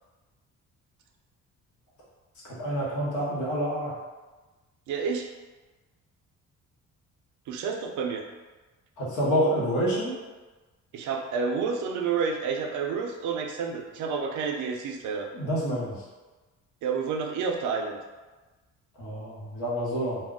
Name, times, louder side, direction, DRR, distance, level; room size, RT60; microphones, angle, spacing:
voice 1, 2.6-3.9 9.0-10.1 15.3-15.9 19.0-20.2, equal, 90° left, -6 dB, 1.0 m, -27 dB
voice 2, 4.9-5.3 7.5-8.2 10.9-15.3 16.8-18.0, right 5 dB, 75° right, 3 dB, 0.5 m, -29 dB
2.3 x 2.0 x 3.6 m, 1.2 s
cardioid pair, 90°, 30 cm